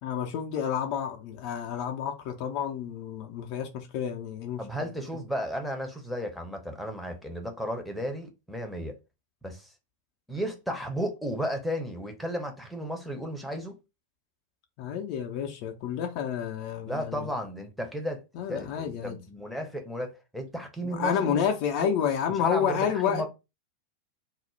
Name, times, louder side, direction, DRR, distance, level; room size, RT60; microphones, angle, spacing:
voice 1, 0.0-4.9 14.8-17.3 18.3-19.2 20.8-23.3, left 8 dB, 45° left, 0.4 m, -30 dB
voice 2, 4.6-9.0 9.4-9.7 10.3-13.8 16.9-18.2 18.5-21.4 21.8-21.9 22.4-23.3, equal, ahead, 0.6 m, -34 dB
2.4 x 2.0 x 3.0 m
figure-of-eight pair, 90°, 0 cm